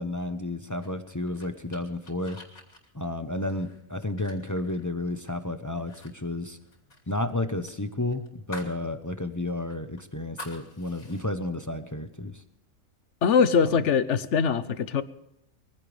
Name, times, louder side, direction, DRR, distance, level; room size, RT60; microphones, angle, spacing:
voice 1, 0.0-2.4 2.9-6.6 7.1-12.4 13.6-13.8, left 2 dB, 15° left, 8 dB, 0.7 m, -32 dB
sound 1, 0.8-5.4 5.8-6.1 6.4-8.8 9.2-9.3 9.7-11.3, left 3 dB, 75° left, 3.5 m, -47 dB
voice 2, 13.2-15.0, left 6 dB, 60° left, 14 dB, 1.1 m, -22 dB
22.5 x 15.5 x 3.4 m, 0.81 s
omnidirectional pair, 1.5 m